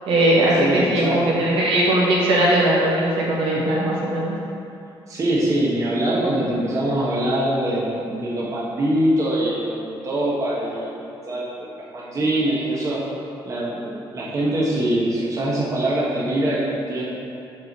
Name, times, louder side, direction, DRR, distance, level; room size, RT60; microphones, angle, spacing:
voice 1, 0.0-4.4, right 1 dB, 80° right, -5 dB, 1.5 m, -19 dB
voice 2, 0.6-1.4 3.5-3.7 5.1-13.0 13.4-17.1, right 1 dB, 35° right, -5 dB, 1.0 m, -23 dB
5.6 x 4.4 x 5.3 m, 2.8 s
cardioid pair, 140°, 9 cm